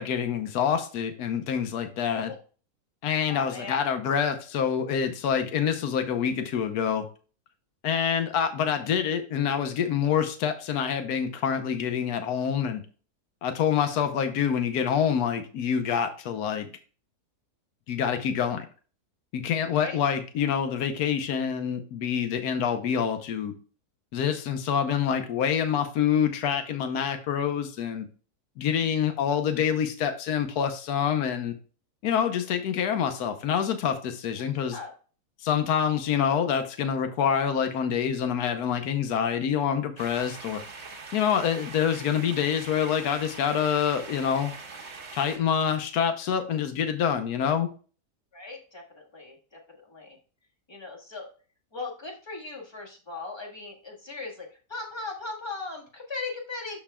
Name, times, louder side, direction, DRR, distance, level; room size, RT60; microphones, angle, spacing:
voice 1, 0.0-2.3 3.0-7.1 7.8-12.8 13.4-16.7 17.9-18.6 19.3-23.5 24.1-28.1 28.6-31.5 32.0-34.8 35.4-40.6 41.1-44.5 45.1-47.7, left 8 dB, 75° left, 8 dB, 1.3 m, -26 dB
voice 2, 3.3-4.0 19.8-20.0 34.6-34.9 48.3-50.2 50.7-51.3 51.7-56.8, left 3 dB, 15° left, -1 dB, 1.5 m, -38 dB
sound 1, 40.0-45.4, right 4 dB, 45° right, 1.5 m, -42 dB
12.5 x 4.5 x 2.3 m, 0.38 s
omnidirectional pair, 1.7 m